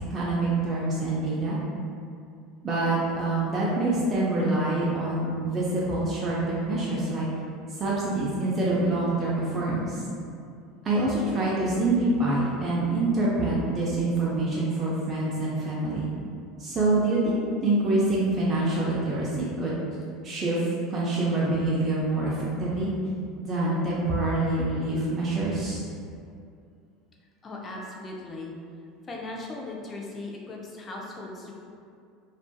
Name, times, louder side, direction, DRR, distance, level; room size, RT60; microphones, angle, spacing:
voice 1, 0.1-1.6 2.6-7.3 7.7-10.0 10.8-16.1 16.6-19.8 20.2-20.6 20.9-22.9 23.4-25.8, right 2 dB, 35° right, -7 dB, 0.5 m, -26 dB
voice 2, 27.4-28.5 29.0-31.5, left 2 dB, 30° left, -1 dB, 0.5 m, -38 dB
2.4 x 2.4 x 2.2 m, 2.4 s
hypercardioid pair, 80°, 0 cm